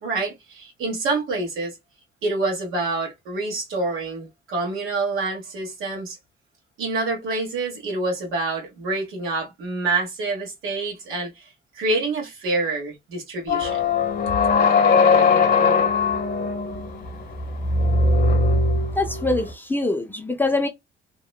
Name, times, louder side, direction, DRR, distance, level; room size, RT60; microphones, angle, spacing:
voice 1, 0.0-1.8 2.2-6.2 6.8-13.8 14.3-14.4, right 3 dB, 80° right, 1.3 m, -27 dB
sound 1, 13.5-19.5, left 4 dB, 45° left, 0.8 m, -20 dB
voice 2, 19.0-20.7, left 2 dB, 10° left, 0.5 m, -24 dB
2.8 x 2.1 x 2.2 m
cardioid pair, 120°, 21 cm